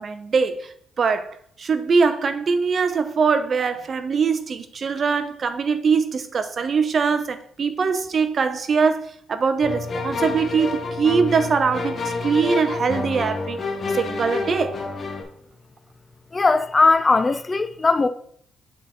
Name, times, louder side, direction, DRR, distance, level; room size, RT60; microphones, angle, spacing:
voice 1, 0.0-13.6 13.9-14.8, right 5 dB, 45° right, 0.7 m, -22 dB
sound 1, 9.6-15.2, left 3 dB, 45° left, 1.4 m, -28 dB
voice 2, 16.3-18.1, left 3 dB, 30° left, 0.4 m, -18 dB
7.6 x 4.2 x 3.8 m
cardioid pair, 90°, 0 cm